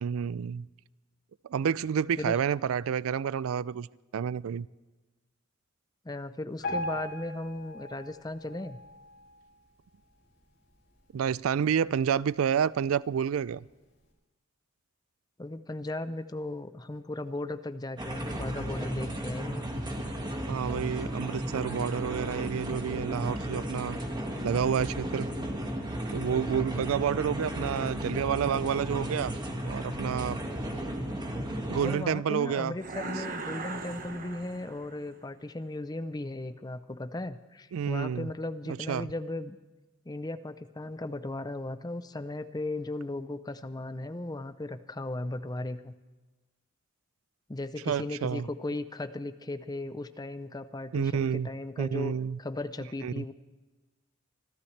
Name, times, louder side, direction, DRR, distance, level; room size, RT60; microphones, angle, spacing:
voice 1, 0.0-0.7 1.5-3.9 4.1-4.7 11.1-13.6 20.5-24.0 24.4-25.3 26.1-29.4 29.6-30.4 31.7-32.7 37.7-38.3 38.7-39.1 47.9-48.5 50.9-51.5 51.8-52.4 53.0-53.2, right 7 dB, 90° right, 0.4 m, -29 dB
voice 2, 6.0-8.8 15.4-19.7 31.8-39.6 40.1-45.9 47.5-53.3, left 2 dB, 20° left, 0.6 m, -36 dB
Piano, 6.6-9.7 10.2-10.4 10.7-10.8 11.5-11.6 12.2-12.3, left 1 dB, 55° left, 6.3 m, -39 dB
sound 1, 18.0-31.9, equal, 20° right, 1.8 m, -34 dB
sound 2, 32.8-35.1, right 3 dB, 40° right, 1.3 m, -39 dB
26.5 x 13.0 x 3.3 m
head